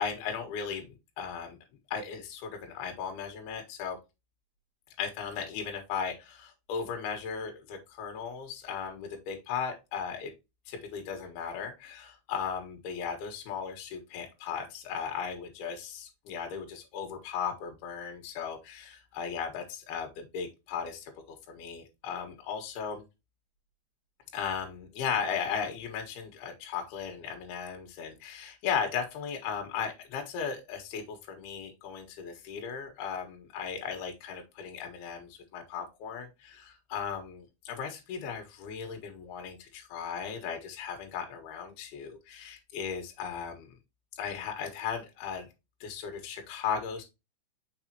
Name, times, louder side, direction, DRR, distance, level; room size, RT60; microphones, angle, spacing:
voice 1, 0.0-1.6 1.9-4.0 5.0-10.3 10.7-23.0 24.3-43.8 44.1-45.5 45.8-47.0, left 7 dB, 65° left, 4 dB, 3.2 m, -36 dB
6.1 x 5.3 x 2.9 m, 0.24 s
omnidirectional pair, 5.3 m